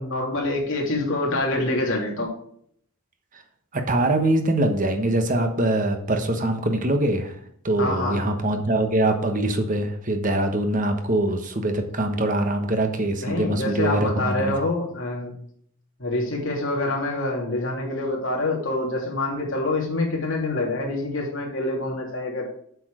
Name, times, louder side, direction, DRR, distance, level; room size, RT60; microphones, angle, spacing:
voice 1, 0.0-2.3 7.8-8.2 13.2-15.3 16.0-22.5, left 2 dB, 60° left, -1 dB, 3.0 m, -26 dB
voice 2, 3.9-7.3 7.6-14.5, right 1 dB, 40° right, 5 dB, 1.2 m, -23 dB
7.9 x 7.0 x 5.0 m, 0.64 s
head